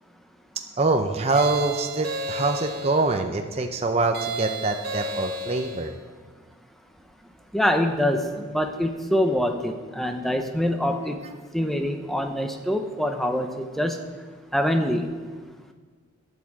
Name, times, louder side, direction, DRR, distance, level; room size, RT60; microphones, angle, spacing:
voice 1, 0.8-5.9, right 3 dB, 30° right, 4 dB, 0.6 m, -24 dB
sound 1, 1.3-3.1 4.1-5.9, right 2 dB, 50° right, 1.7 m, -32 dB
voice 2, 7.5-11.2 11.5-14.0 14.5-15.1, equal, ahead, 5 dB, 0.7 m, -25 dB
9.5 x 8.2 x 7.3 m, 1.5 s
head